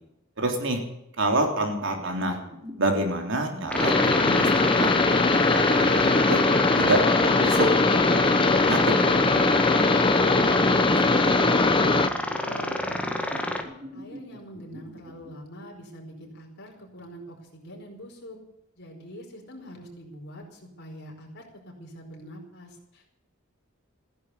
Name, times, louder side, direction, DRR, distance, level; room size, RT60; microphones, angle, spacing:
voice 1, 0.4-0.8 1.2-2.4 2.8-4.5 4.8-5.0 5.3-6.4 6.8-7.0 7.4-8.9, right 1 dB, 65° right, 3 dB, 3.4 m, -27 dB
sound 1, 1.9-2.9 3.5-5.6 6.5-7.6 8.5-10.3 11.3-15.3, equal, 30° right, 3.8 m, -44 dB
sound 2, 3.7-12.1, left 3 dB, 25° left, 0.8 m, -21 dB
sound 3, 3.7-13.6, left 1 dB, 5° left, 1.6 m, -29 dB
voice 2, 9.9-11.8 12.3-13.6 13.9-18.4 18.8-23.3, equal, 55° left, 0 dB, 5.0 m, -44 dB
16.0 x 10.5 x 8.3 m, 0.84 s
head